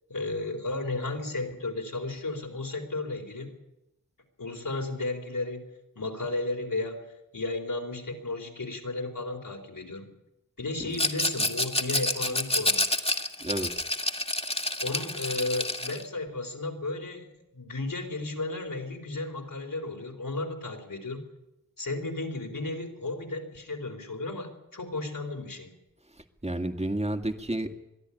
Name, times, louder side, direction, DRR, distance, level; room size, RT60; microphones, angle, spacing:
voice 1, 0.1-3.6 4.4-5.6 6.0-7.0 7.3-10.1 10.6-12.9 14.8-17.3 17.5-21.2 21.8-25.7, left 2 dB, 75° left, 3 dB, 4.1 m, -34 dB
Rattle, 10.9-16.0, left 1 dB, 15° left, 2.0 m, -28 dB
voice 2, 13.4-13.7 26.1-27.8, right 1 dB, 20° right, 6 dB, 2.1 m, -31 dB
22.5 x 13.0 x 9.9 m, 0.92 s
wide cardioid pair, 45°, 33 cm